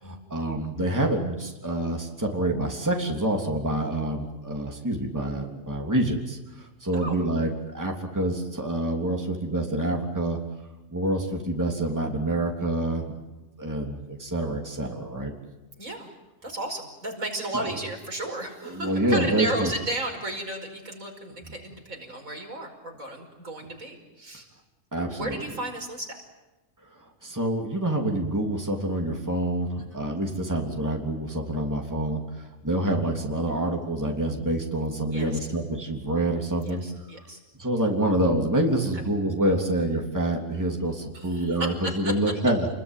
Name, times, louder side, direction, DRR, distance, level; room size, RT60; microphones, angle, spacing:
voice 1, 0.0-10.4 10.9-13.1 13.6-15.3 17.5-17.7 18.6-19.7 21.4-21.5 24.9-25.4 27.2-36.8 37.6-42.7, right 1 dB, 15° right, 1 dB, 3.3 m, -27 dB
voice 2, 15.8-16.1 16.4-24.5 25.1-26.2 29.8-30.0 35.1-35.3 36.6-37.4 41.1-42.1, right 1 dB, 80° right, 2 dB, 5.6 m, -34 dB
29.5 x 21.5 x 9.3 m, 1.1 s
omnidirectional pair, 1.4 m